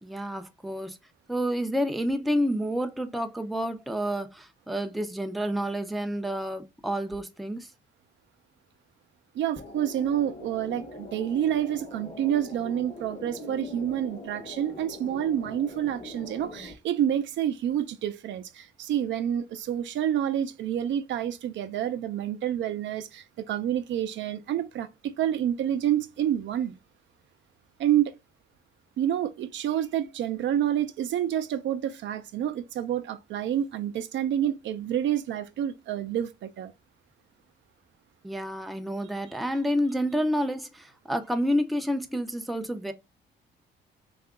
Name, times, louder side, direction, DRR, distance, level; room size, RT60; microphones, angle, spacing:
voice 1, 0.0-1.0 1.3-7.7 38.2-42.9, equal, ahead, 0.4 m, -29 dB
voice 2, 9.3-26.8 27.8-28.1 29.0-36.7, right 10 dB, 70° right, 0.5 m, -28 dB
sound 1, 9.6-16.7, left 2 dB, 40° left, 0.9 m, -42 dB
2.8 x 2.4 x 3.6 m
cardioid pair, 90°, 20 cm